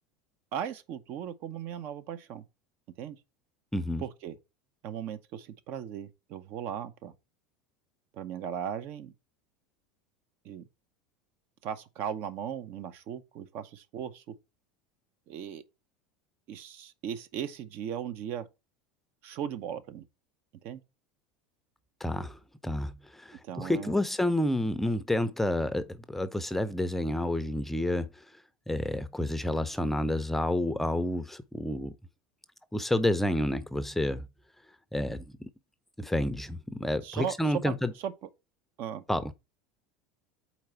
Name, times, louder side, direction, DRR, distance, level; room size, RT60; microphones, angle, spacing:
voice 1, 0.5-2.4 3.0-3.2 4.0-4.3 4.8-7.1 8.1-9.1 10.4-10.7 11.6-14.3 15.3-15.6 16.5-18.5 19.2-20.0 20.6-20.8 23.4-24.0 37.0-37.8 38.0-38.3 38.8-39.0, right 9 dB, 55° right, 0.8 m, -37 dB
voice 2, 3.7-4.0 22.0-22.4 22.6-28.2 28.7-31.9 32.7-34.3 34.9-35.5 36.0-37.9 39.1-39.3, left 1 dB, 5° left, 0.5 m, -29 dB
4.5 x 4.1 x 5.6 m
hypercardioid pair, 100°, 4 cm